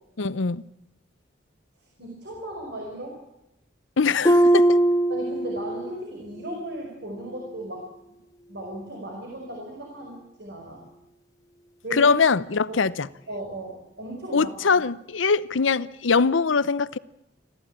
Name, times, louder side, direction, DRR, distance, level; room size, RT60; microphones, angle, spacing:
voice 1, 0.2-0.6 4.0-4.8 11.9-13.1 14.3-17.0, left 5 dB, 85° left, 0.7 m, -22 dB
voice 2, 2.0-3.2 5.1-7.8 8.5-10.8 11.8-12.1 12.7-12.8 13.3-14.8, right 1 dB, 60° right, 5.2 m, -36 dB
Harp, 4.2-6.0 6.4-6.8 7.3-7.4, right 1 dB, 20° left, 1.2 m, -20 dB
26.5 x 15.0 x 8.8 m
head